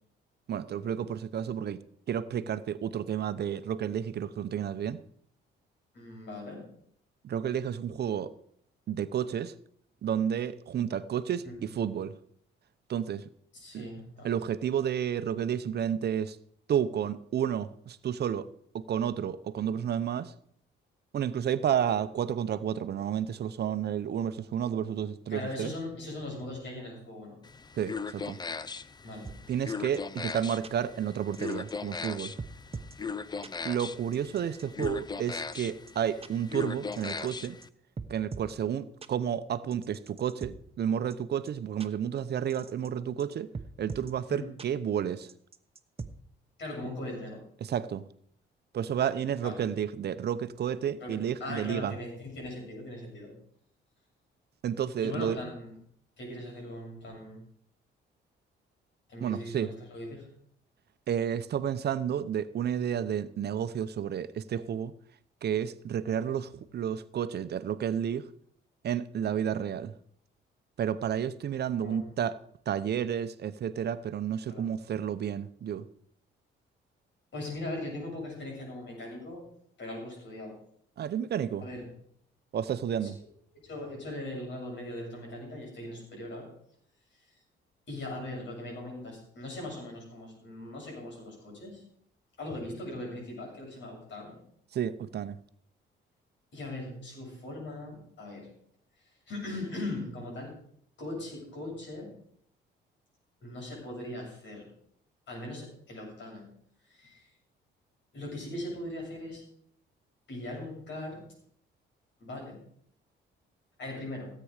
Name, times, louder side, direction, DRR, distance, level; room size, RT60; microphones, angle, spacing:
voice 1, 0.5-1.8 2.1-5.0 7.2-8.3 8.9-9.5 10.0-12.1 12.9-13.2 13.7-13.9 14.2-16.4 16.7-18.5 18.7-20.3 21.1-25.7 27.8-28.4 29.5-32.3 33.6-37.6 38.1-43.5 43.8-45.3 47.6-48.0 48.7-51.9 54.6-55.4 59.2-59.7 61.1-64.9 65.4-68.3 68.8-69.9 70.8-72.4 72.7-75.8 81.0-81.7 82.5-83.2 94.7-95.4, right 9 dB, 55° right, 13 dB, 0.8 m, -31 dB
voice 2, 5.9-6.6 11.4-11.5 13.5-14.3 21.7-22.0 25.3-27.4 29.0-29.3 44.3-44.5 46.6-47.4 49.4-49.7 51.0-53.3 55.0-55.7 56.2-57.4 59.1-60.3 71.8-72.1 74.5-74.6 77.3-79.5 79.8-80.6 81.6-81.9 83.0-83.1 83.6-86.5 87.9-91.8 92.4-94.4 96.5-98.5 99.3-100.5 101.0-102.1 103.4-104.7 105.3-106.5 106.9-107.3 108.1-109.4 110.3-111.2 112.2-112.6 113.8-114.3, left 1 dB, 65° left, 0 dB, 7.3 m, -40 dB
sound 1, 27.4-37.7, left 5 dB, 20° left, 0.5 m, -39 dB
sound 2, 29.2-29.4 29.9-30.0 30.3-30.4 30.6-30.7 31.3-31.7 32.0-32.1 32.4-33.0 33.4-33.5 34.1-34.9 35.5-35.6 35.9-36.0 36.2-36.3 36.9-37.7 38.0-38.5 39.0-39.1 39.7-40.5 41.1-41.2 41.5-41.6 41.8-41.9 42.5-42.9 43.2-43.3 43.5-44.1 44.6-44.7 45.3-46.1, right 4 dB, 30° right, 1.0 m, -41 dB
16.5 x 8.6 x 4.9 m, 0.64 s
cardioid pair, 90°, 20 cm